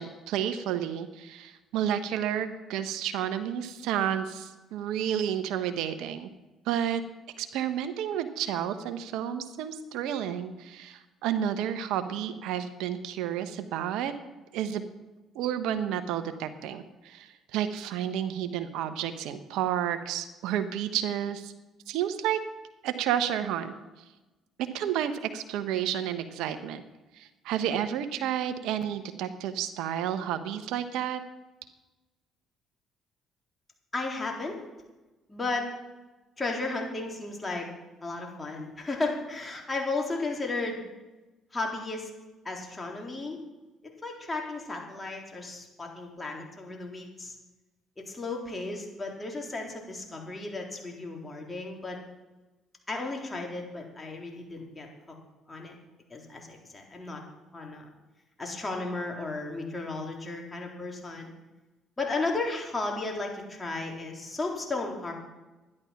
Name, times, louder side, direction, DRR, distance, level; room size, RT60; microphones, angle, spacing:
voice 1, 0.0-6.3 6.6-7.0 7.4-14.1 14.5-14.8 15.3-21.5 21.9-22.4 22.8-23.7 24.7-26.8 27.2-31.2, right 10 dB, 75° right, 10 dB, 1.1 m, -31 dB
voice 2, 33.9-34.6 35.3-35.7 36.4-37.7 38.0-40.8 41.5-42.1 42.4-43.4 44.0-47.3 48.0-52.0 52.9-54.9 55.5-55.7 56.1-57.2 57.5-57.9 58.4-61.3 62.0-65.1, left 3 dB, 25° left, 0 dB, 3.9 m, -34 dB
12.5 x 11.0 x 5.9 m, 1.1 s
hypercardioid pair, 55°, 0 cm